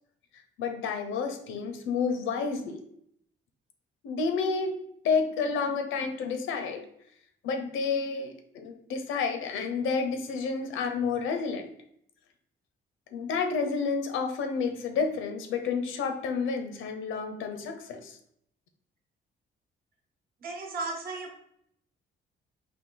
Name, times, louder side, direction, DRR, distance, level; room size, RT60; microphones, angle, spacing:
voice 1, 0.6-2.8 4.0-4.7 5.0-6.8 7.4-11.7 13.1-18.2, left 5 dB, 85° left, 6 dB, 0.7 m, -30 dB
voice 2, 20.4-21.3, right 3 dB, 50° right, 1 dB, 1.0 m, -35 dB
4.2 x 2.6 x 3.8 m, 0.71 s
cardioid pair, 90°, 20 cm